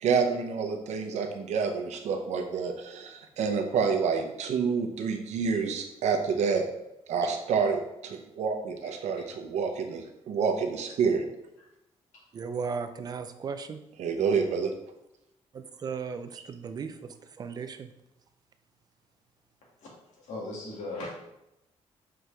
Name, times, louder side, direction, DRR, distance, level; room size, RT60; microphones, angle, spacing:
voice 1, 0.0-6.6 7.1-11.3 14.0-14.7, right 5 dB, 75° right, 5 dB, 0.8 m, -28 dB
voice 2, 12.3-13.8 15.5-17.9, right 5 dB, 35° right, 9 dB, 0.4 m, -36 dB
voice 3, 20.2-21.2, left 2 dB, 80° left, -4 dB, 2.3 m, -38 dB
6.1 x 4.7 x 3.4 m, 0.88 s
wide cardioid pair, 175°, 12 cm